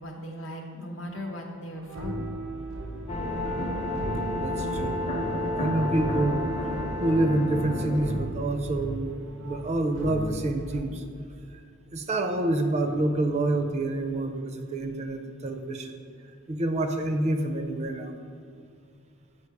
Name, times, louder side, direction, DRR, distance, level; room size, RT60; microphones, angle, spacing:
voice 1, 0.0-2.2, equal, 75° left, 1 dB, 0.9 m, -38 dB
sound 1, 1.7-10.8, right 2 dB, 90° right, 0.6 m, -38 dB
sound 2, 3.1-8.2, left 1 dB, 30° left, 0.6 m, -30 dB
voice 2, 4.4-5.0 5.6-6.4 7.0-9.1 9.4-11.0 11.9-16.0 16.5-18.2, right 2 dB, 35° right, 6 dB, 0.4 m, -27 dB
7.9 x 2.7 x 4.6 m, 2.3 s
head